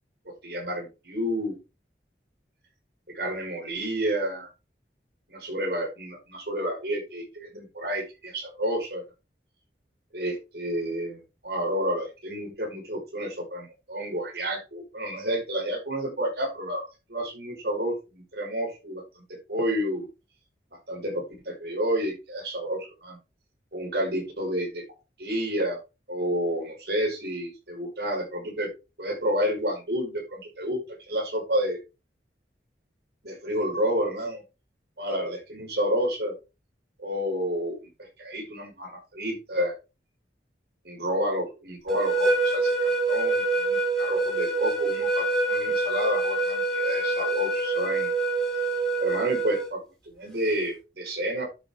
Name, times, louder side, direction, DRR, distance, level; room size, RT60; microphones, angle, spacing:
voice 1, 0.2-1.6 3.1-4.5 5.3-9.0 10.1-19.0 19.5-20.1 20.9-23.2 23.7-24.8 25.2-25.8 26.1-28.7 29.0-30.8 31.1-31.8 33.2-34.4 35.0-36.3 37.0-39.7 40.8-48.1 49.0-49.8 50.2-51.4, equal, 70° right, 1 dB, 5.1 m, -30 dB
sound 1, 41.9-49.7, right 3 dB, 5° left, 3.6 m, -26 dB
11.0 x 7.1 x 3.7 m, 0.28 s
head